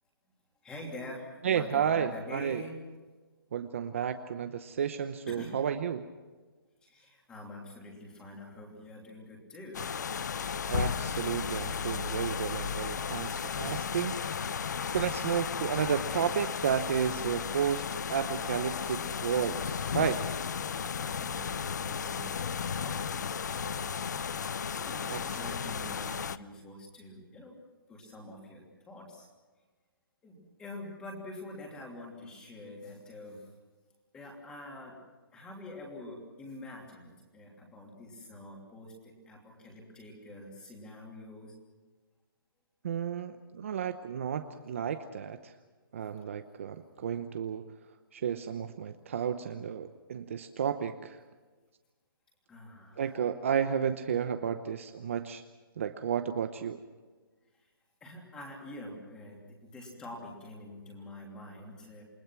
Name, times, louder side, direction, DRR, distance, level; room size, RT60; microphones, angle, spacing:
voice 1, 0.6-2.8 5.3-5.6 6.8-9.8 20.9-27.6 27.9-29.3 30.2-33.4 34.1-35.0 35.3-41.5 52.5-53.1 57.6-57.7 58.0-62.0, left 1 dB, 5° left, 0 dB, 3.0 m, -46 dB
voice 2, 1.4-2.6 3.5-6.1 10.7-14.1 14.9-17.8 18.1-20.2 25.1-25.2 42.8-45.5 45.9-47.6 48.1-51.2 53.0-55.4 55.8-56.8, right 8 dB, 35° right, 8 dB, 0.9 m, -32 dB
sound 1, 9.7-26.4, left 7 dB, 50° left, 0.7 m, -34 dB
28.5 x 20.0 x 6.1 m, 1.3 s
hypercardioid pair, 175°, 12 cm